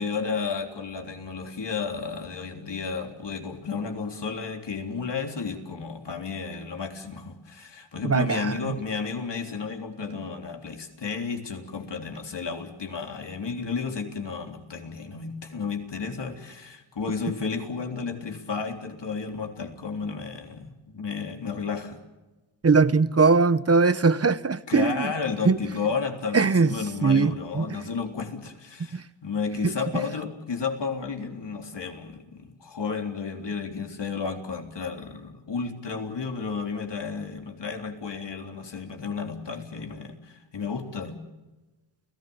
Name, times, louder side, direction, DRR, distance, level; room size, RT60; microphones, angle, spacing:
voice 1, 0.0-22.0 24.7-41.2, left 5 dB, 55° left, 3.7 m, -32 dB
voice 2, 8.0-8.7 22.6-25.1 25.4-25.6 26.3-26.7 27.0-27.8 28.9-29.0 29.6-29.7, right 4 dB, 30° right, 0.9 m, -21 dB
30.0 x 17.0 x 7.1 m
cardioid pair, 80°, 49 cm